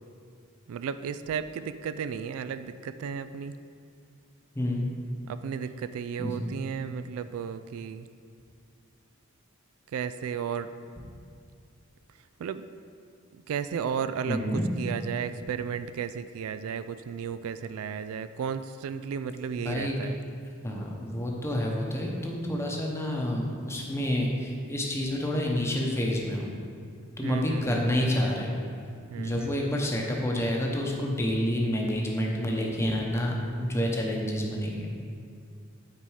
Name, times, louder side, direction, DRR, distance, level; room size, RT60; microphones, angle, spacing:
voice 1, 0.7-3.5 5.3-8.1 9.9-10.7 12.4-12.7 13.3-20.2 27.2-27.8 29.1-29.8, right 7 dB, 75° right, 12 dB, 0.3 m, -34 dB
voice 2, 4.5-4.9 6.2-6.5 14.3-14.7 19.6-19.9 20.6-26.5 27.2-28.6 29.2-33.3 33.6-34.9, equal, 10° left, -1 dB, 0.8 m, -28 dB
8.9 x 4.1 x 4.8 m, 2.3 s
head